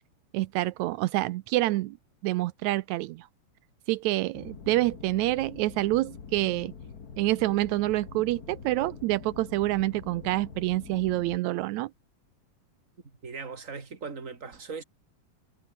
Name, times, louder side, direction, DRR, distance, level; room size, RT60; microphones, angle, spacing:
voice 1, 0.3-2.0 2.2-3.3 3.9-6.7 7.2-11.9, right 17 dB, 85° right, 1.6 m, -27 dB
sound 1, 4.3-11.4, left 6 dB, 35° left, 1.7 m, -45 dB
voice 2, 13.2-14.8, right 5 dB, 25° right, 2.8 m, -39 dB
omnidirectional pair, 4.0 m